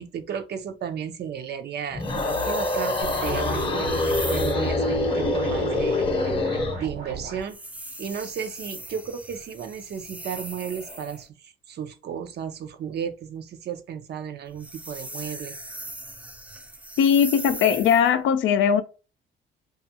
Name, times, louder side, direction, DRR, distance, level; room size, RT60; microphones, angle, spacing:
voice 1, 0.0-3.9 4.3-6.0 6.7-7.6 8.0-15.6, right 8 dB, 55° right, 0.5 m, -34 dB
sound 1, 1.9-6.8, left 2 dB, 25° left, 0.7 m, -25 dB
sound 2, 2.0-4.7 7.4-11.3 14.5-18.1, right 1 dB, 5° right, 0.5 m, -39 dB
sound 3, 3.0-7.4, right 4 dB, 90° right, 1.0 m, -36 dB
voice 2, 17.0-18.8, left 8 dB, 80° left, 0.4 m, -19 dB
2.5 x 2.3 x 2.7 m
cardioid pair, 90°, 20 cm